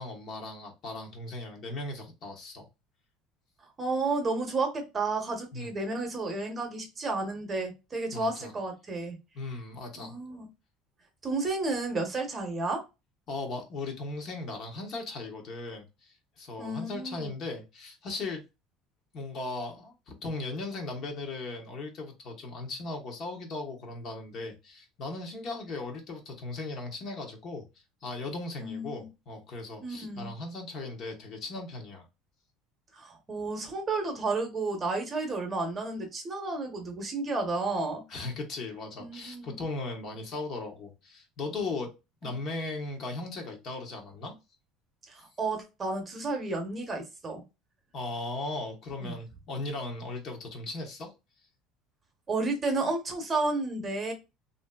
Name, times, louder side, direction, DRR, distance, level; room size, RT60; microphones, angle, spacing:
voice 1, 0.0-2.7 5.5-5.7 8.1-8.5 9.3-10.2 13.3-18.4 19.1-27.7 28.0-32.1 38.1-41.9 42.2-44.3 47.9-51.1, left 2 dB, 45° left, 3 dB, 0.9 m, -37 dB
voice 2, 3.8-9.2 10.0-10.5 11.2-12.8 16.6-17.3 28.6-29.1 29.8-30.3 32.9-38.0 39.0-39.6 42.2-42.4 45.1-47.4 49.0-49.2 52.3-54.1, right 3 dB, 25° right, 4 dB, 0.8 m, -32 dB
3.0 x 2.6 x 2.2 m, 0.26 s
cardioid pair, 140°, 0 cm